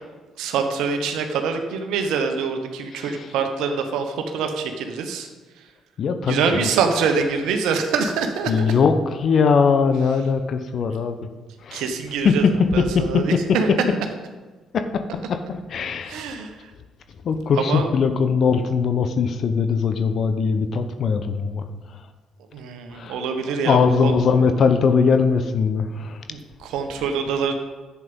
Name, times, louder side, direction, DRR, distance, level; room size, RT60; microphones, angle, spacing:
voice 1, 0.4-5.3 6.3-8.7 11.7-13.7 16.1-16.7 17.5-17.9 22.5-24.1 26.3-27.5, right 5 dB, 70° right, 5 dB, 1.2 m, -25 dB
voice 2, 2.9-3.2 6.0-6.6 8.5-8.9 9.2-11.3 11.6-11.8 12.2-13.2 14.7-15.0 15.3-15.4 15.7-16.2 17.2-21.7 22.9-23.2 23.6-26.2, left 5 dB, 55° left, 9 dB, 0.9 m, -20 dB
11.0 x 8.5 x 5.4 m, 1.3 s
hypercardioid pair, 45°, 0 cm